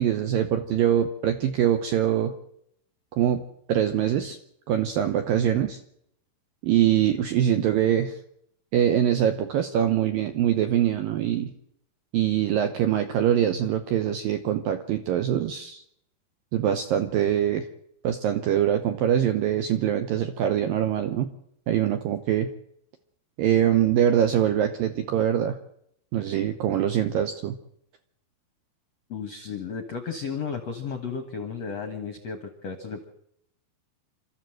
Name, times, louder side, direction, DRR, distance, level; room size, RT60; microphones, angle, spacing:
voice 1, 0.0-2.3 3.2-3.4 3.7-4.4 4.7-5.8 6.6-8.2 8.7-11.5 12.1-15.8 16.5-17.7 18.0-21.3 21.7-22.5 23.4-25.6 26.1-27.6, right 10 dB, 75° right, 8 dB, 2.1 m, -23 dB
voice 2, 29.1-33.0, left 6 dB, 70° left, 7 dB, 1.6 m, -34 dB
28.0 x 13.5 x 7.8 m, 0.73 s
omnidirectional pair, 5.3 m